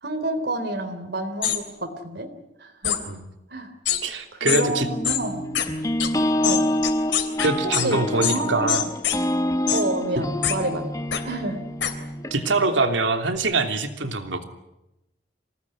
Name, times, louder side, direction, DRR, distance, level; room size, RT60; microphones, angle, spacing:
voice 1, 0.0-2.3 2.6-3.0 3.5-3.7 4.3-5.5 6.4-6.7 7.8-8.8 9.7-10.9 11.3-11.6, right 1 dB, 60° right, 7 dB, 3.6 m, -29 dB
sound 1, 1.4-1.6 2.8-3.0 3.9-4.0 4.5-4.6 5.0-5.2 5.6-5.7 6.0-6.1 6.4-7.9 8.2-8.4 8.7-9.2 9.7-9.8 10.4-10.6 11.1-11.2 11.8-11.9, left 10 dB, 75° left, 3.4 m, -23 dB
voice 2, 4.0-4.9 7.4-8.9 12.3-14.4, right 3 dB, 85° right, 6 dB, 3.0 m, -24 dB
sound 2, 4.5-12.9, left 1 dB, 20° left, 1.0 m, -27 dB
26.5 x 19.0 x 9.8 m, 0.96 s
head